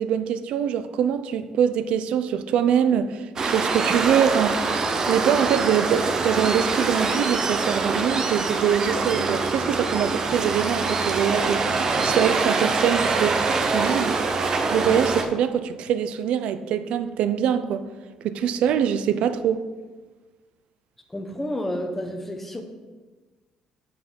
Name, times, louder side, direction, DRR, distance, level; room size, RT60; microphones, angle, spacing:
voice 1, 0.0-4.6 5.1-11.6 12.0-13.4 13.7-14.2 14.7-17.8 18.2-19.6, right 8 dB, 65° right, 0.5 m, -23 dB
Waves surf, 3.4-15.2, right 4 dB, 30° right, 0.7 m, -24 dB
voice 2, 21.1-22.6, equal, 10° left, 0.9 m, -30 dB
7.5 x 5.8 x 6.3 m
cardioid pair, 175°, 2 cm